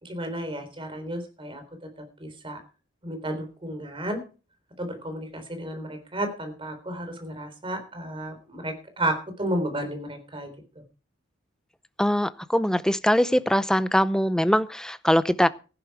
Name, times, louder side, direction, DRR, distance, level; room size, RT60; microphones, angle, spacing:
voice 1, 0.0-1.9 2.2-2.6 3.0-4.2 4.8-10.5, right 1 dB, 25° right, 7 dB, 3.8 m, -32 dB
voice 2, 12.0-15.5, equal, 5° left, 14 dB, 0.6 m, -22 dB
15.0 x 11.0 x 4.8 m, 0.35 s
head